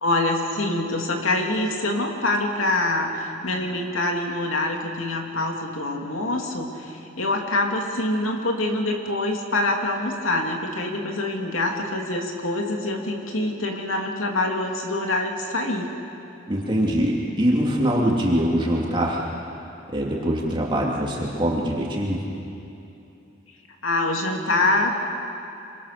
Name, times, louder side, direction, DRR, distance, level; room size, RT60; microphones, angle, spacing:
voice 1, 0.0-15.9 23.8-25.0, left 2 dB, 80° left, 1 dB, 2.8 m, -25 dB
voice 2, 16.5-19.3 19.9-22.2, equal, 25° right, -3 dB, 2.8 m, -23 dB
26.5 x 24.0 x 6.8 m, 2.8 s
head